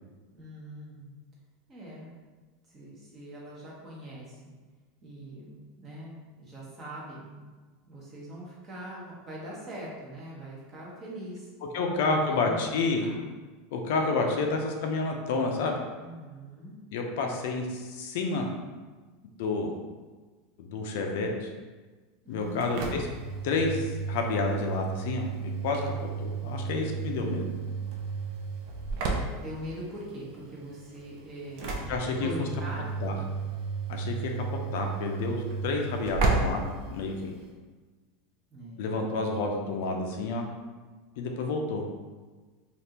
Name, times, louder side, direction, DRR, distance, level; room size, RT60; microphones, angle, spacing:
voice 1, 0.3-1.1 1.7-2.1 2.7-4.4 5.0-7.4 7.9-11.5 11.7-13.2 16.0-16.7 22.2-23.0 26.6-27.4 29.4-33.2 38.5-39.0, right 1 dB, 20° right, -5 dB, 0.8 m, -42 dB
voice 2, 11.7-13.1 13.7-15.8 16.9-18.5 19.4-19.7 20.6-21.5 22.3-23.1 23.4-25.3 25.6-25.9 26.2-27.5 31.9-32.3 33.0-33.1 33.9-34.3 34.7-37.3 38.8-40.5 41.2-41.9, left 3 dB, 65° left, 2 dB, 0.4 m, -29 dB
Engine / Slam, 22.4-37.5, right 4 dB, 50° right, 0.5 m, -33 dB
3.4 x 2.4 x 2.8 m, 1.3 s
supercardioid pair, 165°, 0 cm